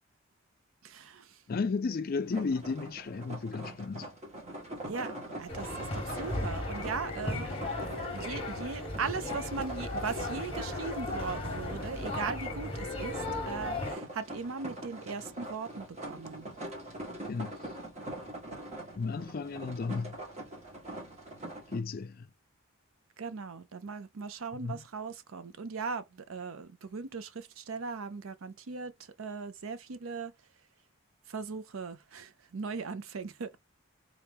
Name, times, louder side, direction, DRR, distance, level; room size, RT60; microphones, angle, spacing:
voice 1, 0.8-1.4 4.9-7.5 8.1-16.5 23.2-30.3 31.3-33.6, right 5 dB, 75° right, 0.6 m, -39 dB
voice 2, 1.5-4.1 17.3-17.6 19.0-20.2 21.7-22.3 24.6-24.8, left 4 dB, 45° left, 0.4 m, -33 dB
sound 1, 2.2-21.8, right 1 dB, 30° right, 1.6 m, -43 dB
sound 2, 5.5-13.9, left 2 dB, 25° left, 1.3 m, -36 dB
3.9 x 2.9 x 3.5 m
head